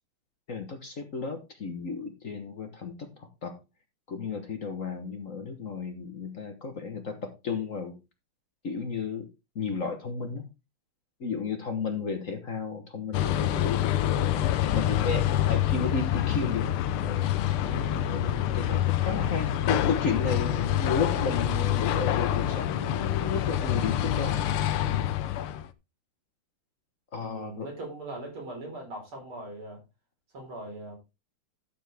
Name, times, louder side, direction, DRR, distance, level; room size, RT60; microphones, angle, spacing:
voice 1, 0.5-3.6 4.1-8.0 8.6-9.3 9.5-10.4 11.2-16.7 17.0-17.3 17.6-24.4 24.8-25.1 27.1-27.7, left 5 dB, 45° left, 1.4 m, -33 dB
sound 1, 13.1-25.7, left 11 dB, 90° left, 1.6 m, -27 dB
voice 2, 18.1-18.4 27.2-29.8 30.3-31.0, right 1 dB, 80° right, 6.1 m, -40 dB
12.5 x 7.2 x 3.4 m
omnidirectional pair, 2.3 m